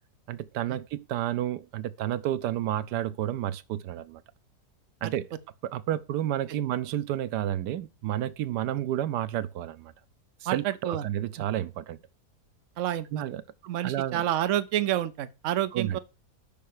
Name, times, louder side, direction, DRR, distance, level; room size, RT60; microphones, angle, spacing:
voice 1, 0.3-4.2 5.0-5.3 5.6-9.9 10.4-12.0 13.1-13.4 13.8-14.2 15.7-16.0, right 12 dB, 85° right, 1.3 m, -31 dB
voice 2, 10.5-11.0 12.8-13.2 13.6-16.0, right 12 dB, 60° right, 0.9 m, -28 dB
8.6 x 5.7 x 6.5 m
omnidirectional pair, 1.7 m